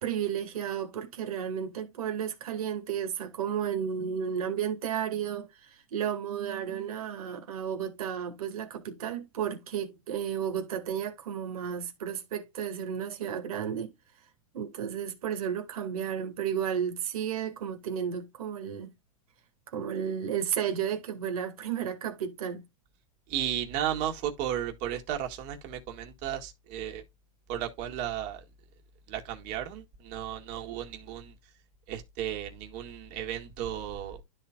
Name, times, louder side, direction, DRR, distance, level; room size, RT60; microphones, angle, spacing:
voice 1, 0.0-13.9 14.5-18.9 19.7-22.6, right 8 dB, 80° right, 2.1 m, -33 dB
voice 2, 23.3-27.0 27.5-28.4 29.1-31.3 31.9-34.2, right 10 dB, 45° right, 1.9 m, -34 dB
12.5 x 4.2 x 2.4 m
hypercardioid pair, 130°, 19 cm